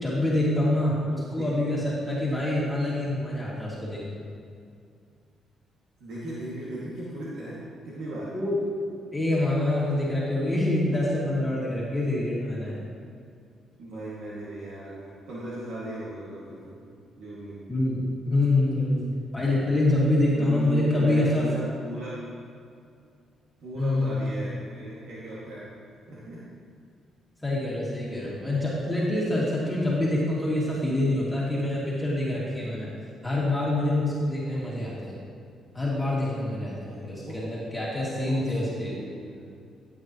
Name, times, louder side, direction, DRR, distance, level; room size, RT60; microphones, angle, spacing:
voice 1, 0.0-4.1 8.3-8.6 9.1-12.8 17.7-21.5 23.7-24.4 27.4-32.9 33.2-35.2 35.7-38.9, left 1 dB, 10° left, -7 dB, 2.6 m, -26 dB
voice 2, 6.0-8.3 13.8-16.8 17.2-17.6 20.3-22.2 23.6-25.7 26.1-26.5 36.8-37.4 38.0-39.4, right 1 dB, 75° right, -8 dB, 2.4 m, -37 dB
13.0 x 8.9 x 3.2 m, 2.4 s
cardioid pair, 90°, 0 cm